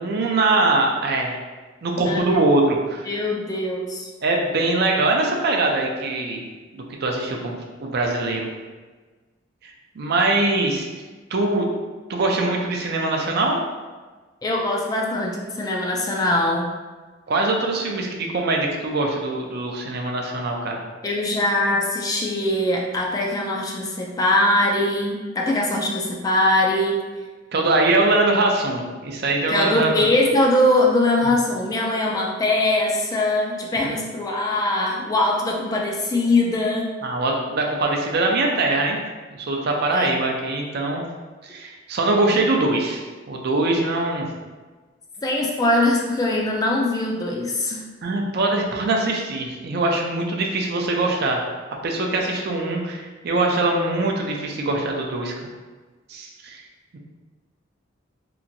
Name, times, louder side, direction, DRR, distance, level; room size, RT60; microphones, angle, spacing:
voice 1, 0.0-1.4 1.8-3.0 4.2-6.4 6.7-8.5 9.6-10.9 11.3-11.7 12.1-13.6 17.3-20.8 27.5-29.9 37.0-39.0 39.5-41.0 41.4-44.3 48.0-51.5 51.8-55.5 56.1-56.6 56.9-57.0, right 2 dB, 55° right, 1 dB, 0.4 m, -22 dB
voice 2, 2.0-2.4 3.1-4.1 14.4-16.7 21.0-27.0 29.5-36.9 39.9-40.1 45.2-47.8, left 1 dB, 20° left, -1 dB, 0.3 m, -22 dB
2.9 x 2.5 x 2.6 m, 1.3 s
head